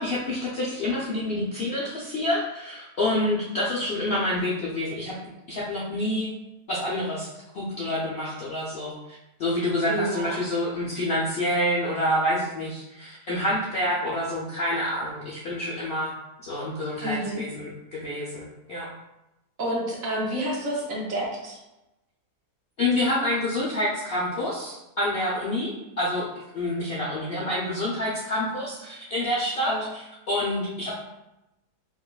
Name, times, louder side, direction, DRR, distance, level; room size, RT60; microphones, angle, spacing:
voice 1, 0.0-5.2 5.5-6.3 6.7-7.3 7.5-16.1 16.4-18.9 22.8-26.3 26.5-31.0, left 1 dB, 65° left, -6 dB, 0.6 m, -28 dB
voice 2, 9.8-10.4 17.0-17.4 19.6-21.6 29.7-29.9, right 1 dB, 65° right, -3 dB, 1.2 m, -29 dB
4.9 x 2.3 x 2.3 m, 0.94 s
omnidirectional pair, 1.7 m